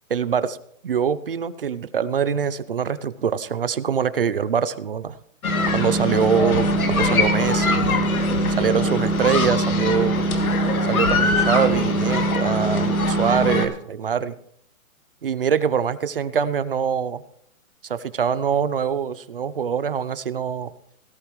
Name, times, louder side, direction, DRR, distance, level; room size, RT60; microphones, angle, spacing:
voice 1, 0.1-0.6 0.8-5.2 5.7-8.1 8.6-10.2 10.9-14.3 15.2-17.2 17.8-20.7, right 7 dB, 40° right, 15 dB, 0.6 m, -24 dB
sound 1, 5.4-13.7, equal, 85° left, 2.8 m, -21 dB
18.0 x 13.0 x 3.1 m, 0.71 s
hypercardioid pair, 175°, 42 cm